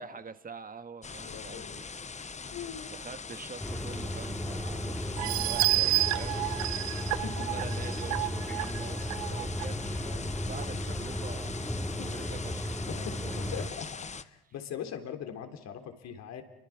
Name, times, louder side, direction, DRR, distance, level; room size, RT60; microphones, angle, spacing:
voice 1, 0.0-1.9 2.9-6.4 7.4-11.6 12.0-13.6, right 5 dB, 30° right, 10 dB, 1.9 m, -45 dB
sound 1, 1.0-14.2, left 5 dB, 25° left, 1.1 m, -42 dB
voice 2, 1.2-1.8 2.5-2.9 6.9-7.5 12.0-12.1 12.9-16.4, left 8 dB, 60° left, 7 dB, 3.6 m, -41 dB
sound 2, 3.6-13.7, left 1 dB, 5° left, 3.0 m, -35 dB
sound 3, 5.2-9.6 10.1-10.2 10.6-10.7, right 18 dB, 65° right, 0.8 m, -30 dB
29.0 x 24.0 x 6.1 m, 1.0 s
hypercardioid pair, 65°, 30 cm